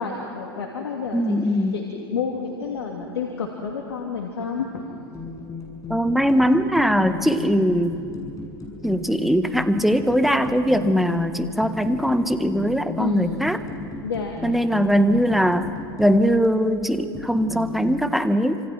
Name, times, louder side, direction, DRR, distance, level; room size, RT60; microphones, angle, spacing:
voice 1, 0.0-4.8 13.0-13.5 14.0-14.4, left 5 dB, 85° left, 0 dB, 2.7 m, -30 dB
voice 2, 1.1-1.7 5.9-8.0 8.8-13.6 14.4-18.6, equal, ahead, 8 dB, 1.7 m, -21 dB
sound 1, 5.1-18.0, left 3 dB, 25° left, 7.1 m, -36 dB
29.5 x 26.5 x 6.1 m, 2.4 s
hypercardioid pair, 90°, 13 cm